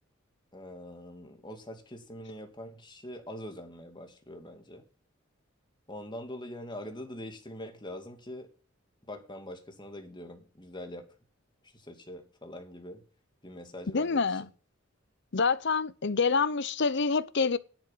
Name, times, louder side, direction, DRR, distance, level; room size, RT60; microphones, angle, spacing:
voice 1, 0.5-4.8 5.9-8.5 9.1-11.1 11.6-13.0 13.4-14.2, left 1 dB, 25° left, 2.4 m, -43 dB
voice 2, 13.9-14.5 15.3-17.6, left 4 dB, 60° left, 0.8 m, -27 dB
11.0 x 8.4 x 5.7 m
head